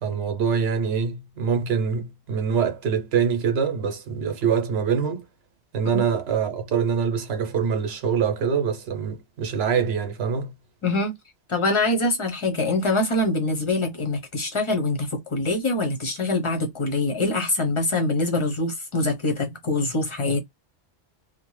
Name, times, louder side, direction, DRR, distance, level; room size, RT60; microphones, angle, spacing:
voice 1, 0.0-5.2 5.7-10.5, right 6 dB, 65° right, 1.0 m, -24 dB
voice 2, 10.8-11.1 11.5-20.4, left 2 dB, 30° left, 0.8 m, -24 dB
2.8 x 2.1 x 3.1 m
omnidirectional pair, 1.1 m